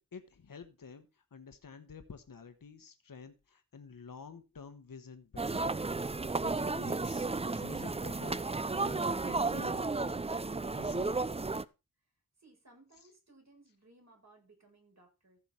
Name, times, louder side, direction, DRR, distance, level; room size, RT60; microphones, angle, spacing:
voice 1, 0.1-5.6 6.4-8.4 8.7-10.1 10.7-11.1 13.0-13.1, left 5 dB, 75° left, 9 dB, 1.2 m, -50 dB
sound 1, 5.4-11.6, right 3 dB, 20° right, 0.5 m, -33 dB
voice 2, 12.4-15.4, right 2 dB, 50° right, 0 dB, 7.5 m, -62 dB
14.5 x 7.1 x 4.3 m, 0.28 s
wide cardioid pair, 70°, 34 cm